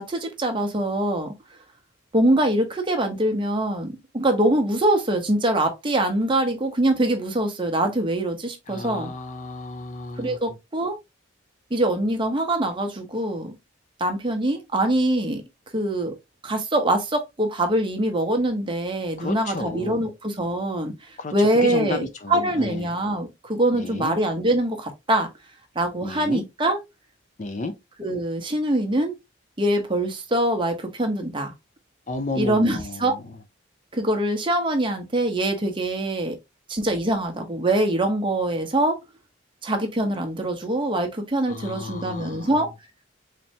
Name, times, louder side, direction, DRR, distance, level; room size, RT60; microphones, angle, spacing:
voice 1, 0.0-1.3 2.1-9.1 10.2-11.0 11.7-13.5 14.0-15.4 15.7-16.1 16.4-25.3 25.7-26.8 28.0-29.1 29.6-31.5 32.3-33.1 33.9-36.4 36.7-39.0 39.6-42.7, right 1 dB, 25° right, 0.8 m, -24 dB
voice 2, 8.7-10.4 19.2-20.1 21.2-22.9 23.7-24.1 26.0-26.4 27.4-27.7 32.1-33.1 41.5-42.5, left 3 dB, 35° left, 0.4 m, -32 dB
4.2 x 3.2 x 2.7 m
head